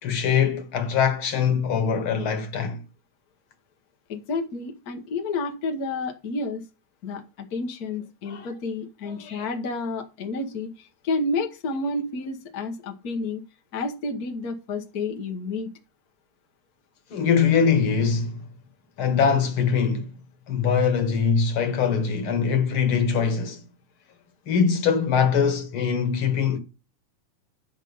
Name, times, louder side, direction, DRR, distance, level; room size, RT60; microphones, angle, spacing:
voice 1, 0.0-2.8 8.3-8.5 9.0-9.4 17.1-18.4 19.0-20.1 20.5-23.6 24.5-26.6, left 6 dB, 55° left, 1.7 m, -22 dB
voice 2, 4.1-6.6 7.0-13.4 13.7-15.7, left 3 dB, 80° left, 0.8 m, -30 dB
9.9 x 5.0 x 5.4 m
omnidirectional pair, 3.6 m